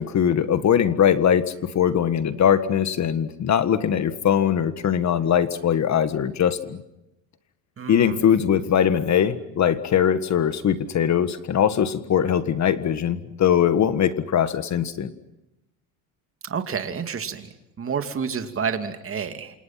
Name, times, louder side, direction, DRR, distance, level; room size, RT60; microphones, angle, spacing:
voice 1, 0.0-6.8 7.9-15.1, left 9 dB, 40° left, 12 dB, 1.6 m, -21 dB
voice 2, 7.8-8.2 16.4-17.5 17.8-19.6, right 6 dB, 30° right, 8 dB, 2.6 m, -29 dB
29.0 x 27.0 x 5.9 m, 0.91 s
supercardioid pair, 105°, 41 cm